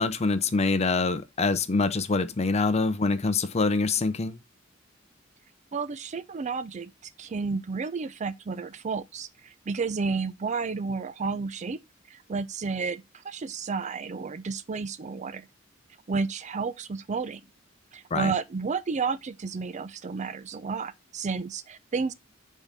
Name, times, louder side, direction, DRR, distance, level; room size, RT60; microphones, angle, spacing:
voice 1, 0.0-4.4 18.1-18.3, left 3 dB, 35° left, 0.6 m, -25 dB
voice 2, 5.7-6.9 7.2-11.8 12.1-15.5 16.1-17.4 17.9-22.1, right 4 dB, 35° right, 0.4 m, -31 dB
6.9 x 3.7 x 4.1 m
head